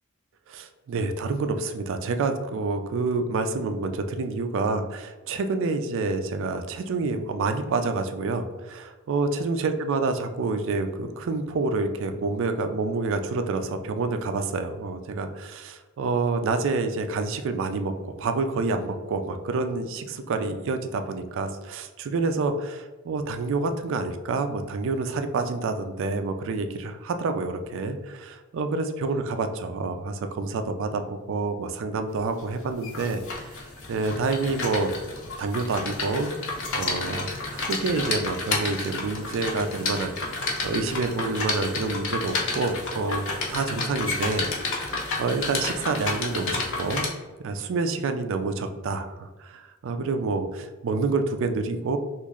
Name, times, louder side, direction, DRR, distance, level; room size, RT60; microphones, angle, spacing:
voice 1, 0.5-31.0 31.3-33.6 33.9-34.9 35.4-36.3 36.7-47.1 47.4-52.0, right 3 dB, 65° right, 8 dB, 0.4 m, -28 dB
sound 1, 32.4-47.1, left 3 dB, 65° left, 0.7 m, -31 dB
3.0 x 2.5 x 3.6 m, 1.2 s
head